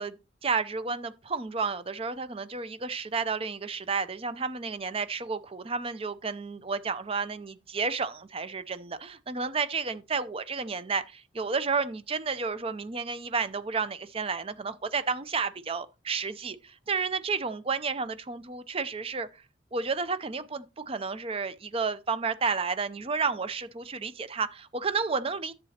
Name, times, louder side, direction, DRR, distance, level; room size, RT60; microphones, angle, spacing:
voice 1, 0.0-19.4 19.7-25.5, right 5 dB, 30° right, 0.5 m, -31 dB
10.5 x 7.4 x 2.8 m
head